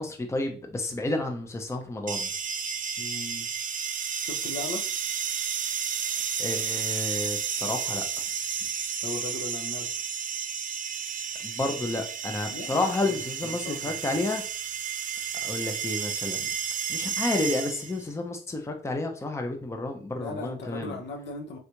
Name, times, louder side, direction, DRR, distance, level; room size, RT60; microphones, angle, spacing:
voice 1, 0.0-2.3 6.4-8.0 11.4-14.4 15.4-16.4 16.9-21.0, left 2 dB, 15° left, 3 dB, 0.6 m, -30 dB
sound 1, 2.1-18.0, right 7 dB, 40° right, 0.5 m, -32 dB
voice 2, 3.0-3.5 4.2-4.8 9.0-9.9 12.5-13.1 13.4-14.0 20.2-21.6, left 3 dB, 60° left, 3 dB, 0.8 m, -37 dB
3.3 x 2.5 x 2.9 m, 0.41 s
cardioid pair, 90°, 20 cm